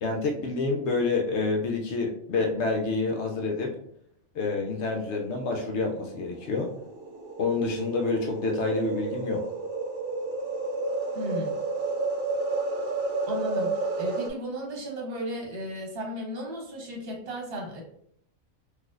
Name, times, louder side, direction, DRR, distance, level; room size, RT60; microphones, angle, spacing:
voice 1, 0.0-3.8 4.3-6.7 7.4-9.4, left 3 dB, 65° left, 2 dB, 0.8 m, -28 dB
sound 1, 5.2-14.3, right 3 dB, 70° right, 0.8 m, -31 dB
voice 2, 11.1-11.5 13.3-17.8, equal, 50° right, -2 dB, 1.1 m, -34 dB
4.2 x 2.5 x 2.4 m, 0.67 s
omnidirectional pair, 1.4 m